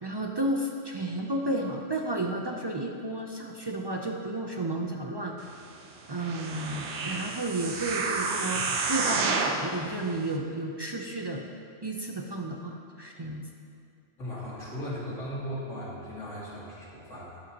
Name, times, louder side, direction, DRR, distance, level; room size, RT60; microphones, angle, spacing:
voice 1, 0.0-5.5 6.1-11.5 11.8-13.4, right 1 dB, 35° right, 1 dB, 0.4 m, -32 dB
sound 1, 6.1-9.7 10.3-10.4, right 4 dB, 65° right, 1.1 m, -30 dB
voice 2, 14.2-17.4, equal, 80° left, -7 dB, 2.5 m, -37 dB
12.0 x 9.5 x 3.0 m, 2.4 s
omnidirectional pair, 1.3 m